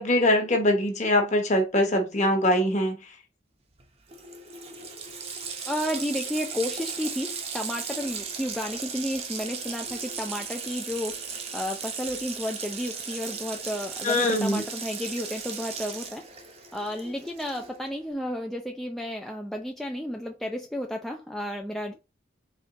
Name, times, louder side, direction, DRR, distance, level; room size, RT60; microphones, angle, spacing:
voice 1, 0.0-3.0 14.0-14.6, left 1 dB, 40° left, 1.1 m, -23 dB
Water tap faucet, 3.8-3.9 4.1-17.9, right 5 dB, 35° right, 0.7 m, -36 dB
voice 2, 5.7-16.2 16.7-21.9, equal, ahead, 0.3 m, -32 dB
4.2 x 3.3 x 2.9 m
head